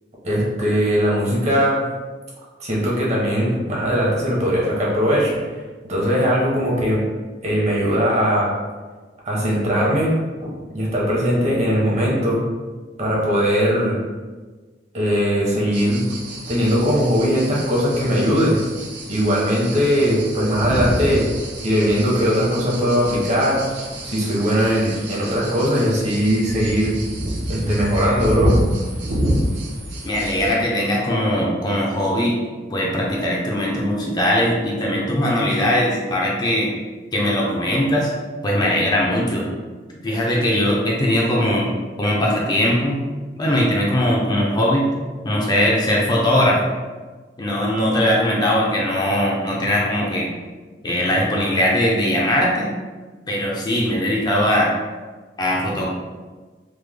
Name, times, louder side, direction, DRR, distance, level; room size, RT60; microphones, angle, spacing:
voice 1, 0.2-1.8 2.6-5.4 5.9-7.0 7.4-8.5 9.2-10.1 10.4-12.4 13.0-14.0 14.9-16.0 16.5-18.6 19.1-21.3 21.6-23.6 24.0-26.9 27.5-28.5, equal, 40° right, -5 dB, 0.9 m, -19 dB
sound 1, 15.7-30.5, right 1 dB, 70° right, 0.7 m, -28 dB
voice 2, 30.0-32.4 32.7-36.7 37.1-38.1 38.4-39.5 40.0-41.7 42.0-43.0 43.4-44.9 45.2-46.6 47.4-50.3 50.8-52.7 53.3-54.7 55.4-55.9, left 1 dB, 25° left, -3 dB, 0.4 m, -20 dB
3.2 x 2.1 x 3.4 m, 1.3 s
head